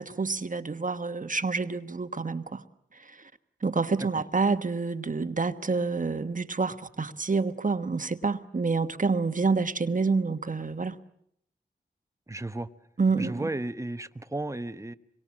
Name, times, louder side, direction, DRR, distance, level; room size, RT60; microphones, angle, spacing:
voice 1, 0.0-2.6 2.9-3.3 3.6-11.0 13.0-13.5, right 4 dB, 45° right, 1.3 m, -28 dB
voice 2, 12.3-12.7 13.2-14.9, right 2 dB, 15° right, 1.1 m, -34 dB
25.5 x 23.0 x 7.5 m
cardioid pair, 60°, 19 cm